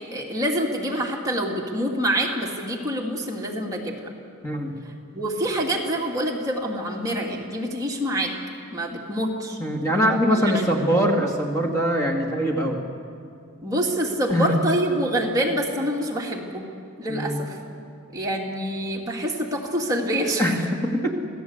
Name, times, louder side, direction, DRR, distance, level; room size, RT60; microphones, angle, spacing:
voice 1, 0.1-4.1 5.1-8.3 8.7-9.6 10.3-10.8 13.6-16.7 17.0-17.6 18.1-20.6, right 1 dB, 15° right, -2 dB, 2.5 m, -26 dB
voice 2, 4.4-4.8 9.6-12.8 14.3-14.6 17.1-17.4 20.4-21.1, equal, 15° left, 1 dB, 2.4 m, -22 dB
27.5 x 17.5 x 8.1 m, 2.4 s
head